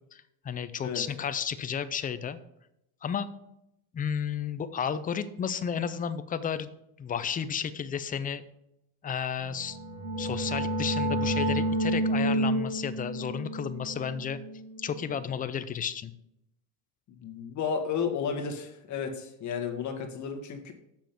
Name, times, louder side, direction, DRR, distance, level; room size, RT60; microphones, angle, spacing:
voice 1, 0.1-2.4 3.0-3.3 3.9-6.7 7.0-8.4 9.0-9.8 10.2-14.4 14.8-16.1, left 7 dB, 20° left, 12 dB, 0.5 m, -32 dB
sound 1, 9.5-15.1, right 1 dB, 85° right, 2.1 m, -30 dB
voice 2, 17.1-20.7, left 6 dB, 45° left, 3 dB, 1.5 m, -33 dB
7.3 x 6.0 x 5.2 m, 0.83 s
cardioid pair, 125°, 39 cm